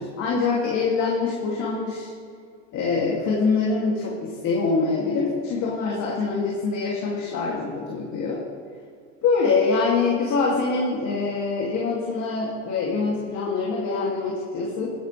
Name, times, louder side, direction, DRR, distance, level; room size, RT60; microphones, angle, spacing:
voice 1, 0.0-2.1 2.7-8.4 9.2-14.9, left 4 dB, 50° left, -4 dB, 2.7 m, -24 dB
16.0 x 11.0 x 3.4 m, 2.2 s
supercardioid pair, 110°, 38 cm